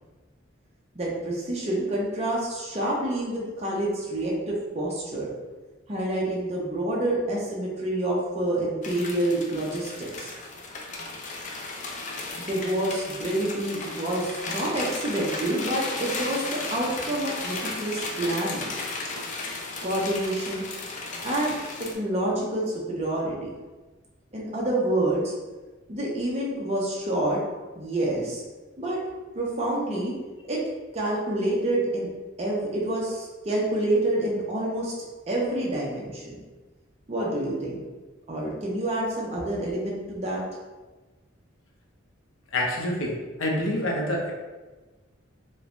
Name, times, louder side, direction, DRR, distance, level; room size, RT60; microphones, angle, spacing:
voice 1, 0.9-5.3 5.9-10.3 12.5-18.7 19.8-20.6 21.2-23.5 24.3-25.3 25.9-27.4 27.8-28.4 28.8-29.0 29.3-30.1 30.5-30.6 30.9-32.1 32.4-34.9 35.3-36.4 37.1-37.8 38.3-40.4, right 1 dB, 30° right, -4 dB, 0.6 m, -28 dB
sound 1, 8.8-21.9, left 3 dB, 35° left, 0.3 m, -35 dB
voice 2, 42.5-43.1 43.4-44.3, left 1 dB, 80° left, -1 dB, 0.6 m, -26 dB
3.1 x 2.1 x 2.5 m, 1.2 s
head